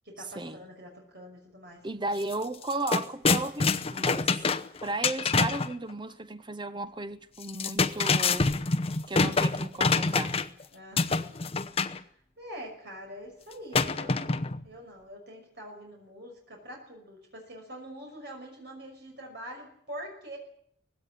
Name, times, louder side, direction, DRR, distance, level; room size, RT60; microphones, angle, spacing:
voice 1, 0.0-1.9 10.7-11.3 11.9-12.0 12.4-20.4, equal, 60° right, 5.9 m, -44 dB
voice 2, 1.8-4.4 4.8-8.5 9.1-10.4, right 2 dB, 25° right, 0.9 m, -35 dB
sound 1, 2.2-2.3 2.6-5.7 7.4-10.6 11.0-12.0 13.7-14.6, left 4 dB, 30° left, 0.8 m, -26 dB
19.0 x 16.5 x 10.0 m
head